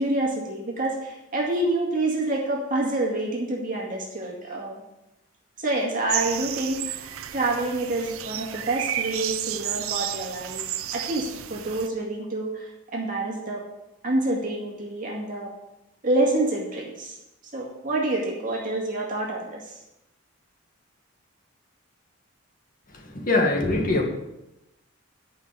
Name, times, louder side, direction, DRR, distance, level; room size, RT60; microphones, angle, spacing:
voice 1, 0.0-4.8 5.6-10.6 10.9-13.6 14.0-15.5 16.0-17.2 17.5-19.6, right 2 dB, 40° right, -2 dB, 2.1 m, -27 dB
sound 1, 6.1-11.9, right 11 dB, 90° right, 0.6 m, -32 dB
voice 2, 22.9-24.1, left 2 dB, 40° left, 0 dB, 2.0 m, -23 dB
11.0 x 5.7 x 7.0 m, 0.92 s
head